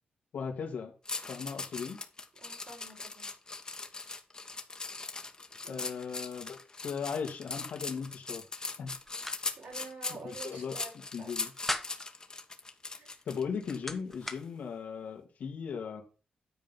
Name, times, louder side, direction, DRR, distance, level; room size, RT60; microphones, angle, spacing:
voice 1, 0.3-0.9 1.3-2.0 5.7-8.4 8.8-8.9 10.1-10.7 11.1-11.5 13.3-16.0, left 6 dB, 80° left, 2 dB, 2.4 m, -37 dB
sound 1, 1.0-13.8 14.2-14.4, left 3 dB, 30° left, 1.5 m, -40 dB
voice 2, 2.3-3.3 5.6-6.0 9.6-11.3 12.9-13.2, right 4 dB, 75° right, -1 dB, 4.5 m, -48 dB
sound 2, 8.9-9.4 9.7-9.8 11.3-12.1 13.3-14.4, left 1 dB, 5° left, 1.2 m, -38 dB
10.5 x 3.9 x 7.3 m, 0.35 s
cardioid pair, 105°, 3 cm